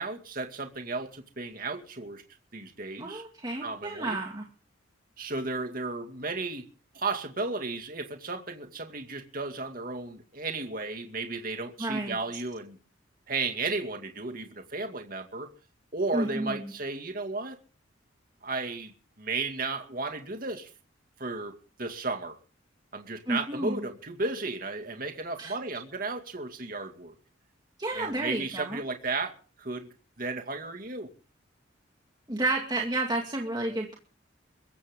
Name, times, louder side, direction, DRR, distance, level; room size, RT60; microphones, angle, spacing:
voice 1, 0.0-2.2 2.5-3.2 3.6-4.2 5.2-6.7 6.9-12.8 13.3-15.5 15.9-17.6 18.4-18.9 19.2-20.7 21.2-22.4 22.9-27.1 27.9-29.3 29.6-31.1, right 3 dB, 45° right, 2.3 m, -34 dB
voice 2, 3.0-4.5 11.8-12.2 16.1-16.7 23.3-23.8 25.4-25.5 27.8-28.8 32.3-34.0, right 2 dB, 20° right, 2.2 m, -31 dB
22.5 x 14.5 x 3.8 m
head